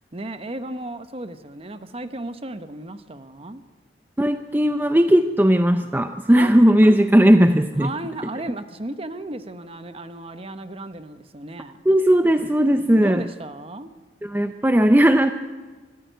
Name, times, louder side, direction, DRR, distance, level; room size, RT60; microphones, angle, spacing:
voice 1, 0.1-3.6 6.4-6.5 7.8-11.8 12.9-13.9, right 2 dB, 35° right, 10 dB, 1.0 m, -34 dB
voice 2, 4.2-7.9 11.9-13.3 14.2-15.3, equal, 10° right, 8 dB, 0.6 m, -17 dB
24.5 x 13.5 x 9.2 m, 1.4 s
head